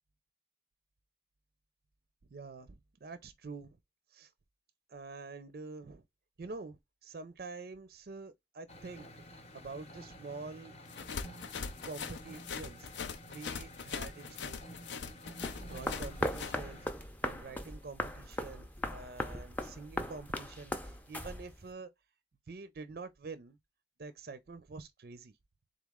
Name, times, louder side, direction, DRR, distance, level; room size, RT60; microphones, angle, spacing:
voice 1, 2.3-3.8 4.1-4.3 4.9-6.0 6.4-9.2 9.5-10.7 11.8-12.9 13.3-14.6 15.6-21.9 22.5-23.6 24.0-25.3, right 4 dB, 55° right, 0.4 m, -47 dB
sound 1, 8.7-16.9, equal, 35° left, 0.8 m, -51 dB
sound 2, 10.9-16.6, left 6 dB, 80° left, 0.5 m, -41 dB
sound 3, 15.4-21.7, left 1 dB, 10° left, 0.4 m, -39 dB
3.9 x 3.0 x 3.5 m
head